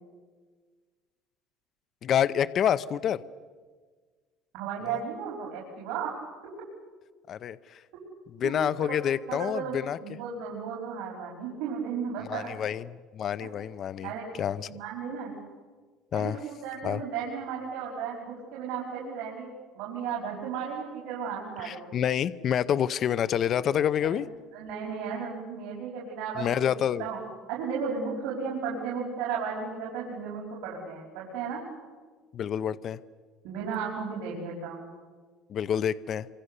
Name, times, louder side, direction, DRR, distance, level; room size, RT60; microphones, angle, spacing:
voice 1, 2.0-3.2 7.3-7.8 8.4-10.2 12.3-14.1 14.4-14.7 16.1-16.4 16.8-17.0 21.6-24.3 26.4-27.1 32.3-33.0 35.5-36.3, left 9 dB, 40° left, 14 dB, 0.6 m, -28 dB
voice 2, 4.5-6.1 8.4-8.5 8.8-8.9 9.3-12.5 13.4-13.5 14.0-14.3 14.6-15.4 16.1-19.5 19.7-21.9 24.5-27.2 27.5-31.6 33.4-34.9, right 6 dB, 80° right, -3 dB, 5.5 m, -34 dB
26.5 x 25.0 x 6.7 m, 1.5 s
cardioid pair, 145°, 0 cm